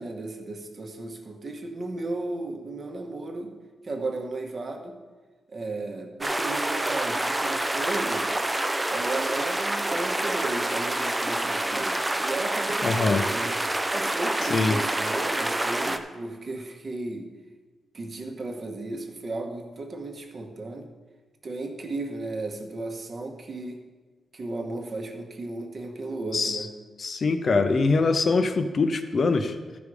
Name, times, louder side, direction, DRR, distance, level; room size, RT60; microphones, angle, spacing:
voice 1, 0.0-3.5 3.8-5.0 5.5-8.3 8.9-13.6 13.9-17.3 17.9-20.9 21.4-23.8 24.3-26.7, right 2 dB, 35° right, 4 dB, 1.0 m, -34 dB
sound 1, 6.2-16.0, right 1 dB, 10° right, 0.4 m, -27 dB
voice 2, 12.8-13.2 14.5-14.8 26.3-26.7 27.0-29.6, left 3 dB, 40° left, 8 dB, 0.6 m, -23 dB
14.0 x 5.2 x 4.8 m, 1.3 s
wide cardioid pair, 170°, 0 cm